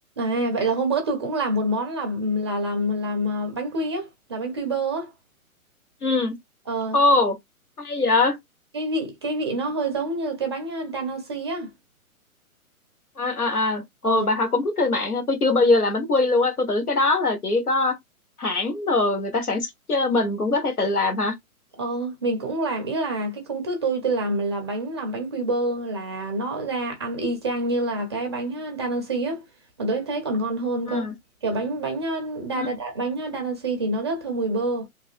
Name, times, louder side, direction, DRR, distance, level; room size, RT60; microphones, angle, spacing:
voice 1, 0.2-5.1 6.7-7.0 8.7-11.7 14.0-14.3 21.8-29.5 29.8-31.1 31.4-34.9, right 2 dB, 20° right, 0.4 m, -27 dB
voice 2, 6.0-6.3 6.9-7.4 7.8-8.4 13.2-18.0 18.4-21.4 30.9-31.1 32.6-32.7, left 2 dB, 90° left, 1.2 m, -22 dB
3.2 x 2.6 x 2.4 m
figure-of-eight pair, 130°, 44 cm